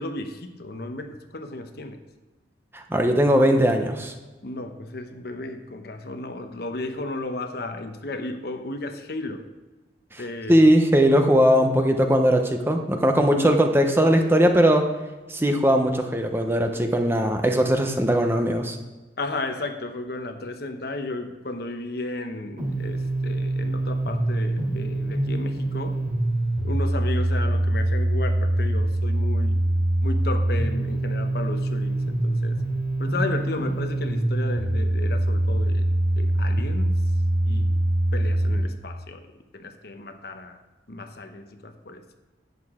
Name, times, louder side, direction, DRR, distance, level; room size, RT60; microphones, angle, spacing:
voice 1, 0.0-2.0 4.4-9.4 10.2-10.6 13.3-13.6 19.2-26.0 26.6-29.6 30.0-32.6 33.0-35.9 36.2-37.1 37.4-37.8 38.1-40.6 40.9-42.1, left 2 dB, 60° left, 6 dB, 0.9 m, -34 dB
voice 2, 2.7-4.1 10.5-14.9 15.3-18.8, equal, 15° right, 4 dB, 0.8 m, -19 dB
sound 1, 22.6-38.6, right 1 dB, 50° right, 2.9 m, -24 dB
11.0 x 8.3 x 3.7 m, 1.2 s
head